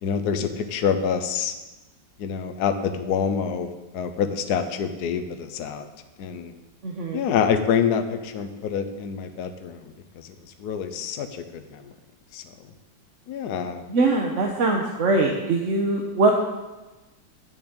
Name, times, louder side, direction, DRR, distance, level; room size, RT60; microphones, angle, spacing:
voice 1, 0.0-1.5 2.2-5.9 6.2-6.5 7.1-11.9 12.3-12.4 13.3-13.8, left 7 dB, 60° left, 8 dB, 1.3 m, -27 dB
voice 2, 6.8-7.2 13.9-16.3, right 3 dB, 45° right, 1 dB, 1.1 m, -22 dB
11.0 x 7.1 x 8.1 m, 1.1 s
omnidirectional pair, 2.1 m